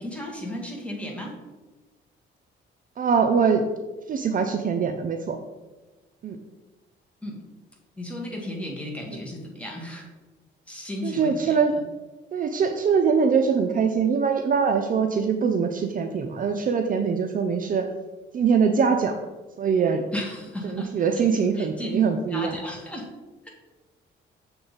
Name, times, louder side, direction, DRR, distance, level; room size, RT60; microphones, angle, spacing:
voice 1, 0.0-1.4 7.2-7.4 8.0-10.1 10.7-11.6 20.1-22.0 22.3-23.1, left 1 dB, 5° left, -1 dB, 1.6 m, -35 dB
voice 2, 3.0-3.6 4.1-5.4 6.2-6.4 11.0-11.7 12.3-17.8 18.3-19.1 19.6-20.0 20.7-22.5, right 6 dB, 45° right, 5 dB, 0.5 m, -23 dB
6.6 x 3.9 x 4.0 m, 1.2 s
cardioid pair, 90°, 20 cm